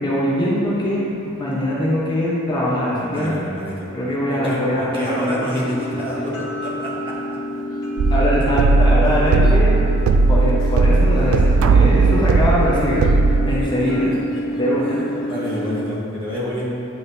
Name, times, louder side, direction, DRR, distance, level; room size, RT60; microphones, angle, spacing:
voice 1, 0.0-3.3 3.9-5.3 8.1-9.7 10.3-13.1 13.5-14.1 14.6-15.0, equal, 20° left, -7 dB, 0.9 m, -22 dB
voice 2, 3.1-3.9 4.3-7.1 13.5-14.4 14.8-15.0 15.3-16.6, equal, 25° right, -7 dB, 1.2 m, -28 dB
sound 1, 5.5-15.8, equal, 65° left, 1.2 m, -29 dB
sound 2, 8.0-13.6, right 3 dB, 80° right, 0.3 m, -16 dB
9.5 x 3.9 x 2.7 m, 2.7 s
head